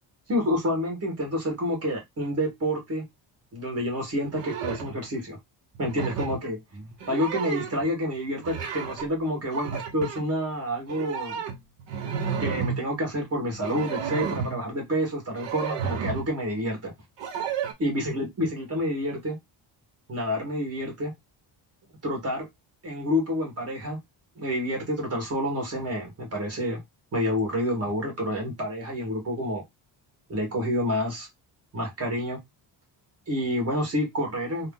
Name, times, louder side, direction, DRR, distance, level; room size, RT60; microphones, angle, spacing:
voice 1, 0.3-3.0 3.5-5.4 5.8-11.4 12.4-16.9 17.8-19.4 20.1-21.1 22.0-22.5 22.8-24.0 24.3-26.8 27.1-29.6 30.3-31.3 31.7-32.4 33.3-34.7, equal, 35° right, 1.6 m, -28 dB
sound 1, 4.3-4.9 5.7-6.4 6.9-7.9 8.4-9.1 9.4-10.3 10.9-12.8 13.5-14.6 15.4-16.3 17.2-17.7, right 7 dB, 75° right, 0.8 m, -32 dB
3.1 x 2.0 x 3.7 m
cardioid pair, 155°, 44 cm